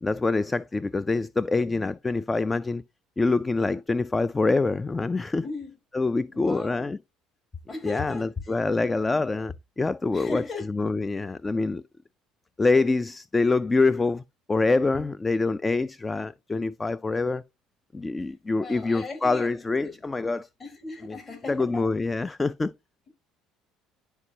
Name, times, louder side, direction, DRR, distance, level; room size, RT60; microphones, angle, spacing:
voice 1, 0.0-2.8 3.2-5.4 5.9-7.0 7.8-10.4 10.7-11.8 12.6-14.2 14.5-17.4 17.9-20.5 21.1-21.2 21.5-22.7, left 3 dB, 20° left, 0.4 m, -25 dB
voice 2, 5.4-5.7 6.3-6.9 7.7-8.3 10.1-10.7 18.6-19.5 19.8-20.0 20.6-21.9 22.2-22.3, left 3 dB, 35° left, 4.1 m, -37 dB
11.0 x 4.5 x 2.8 m
supercardioid pair, 80°, 0 cm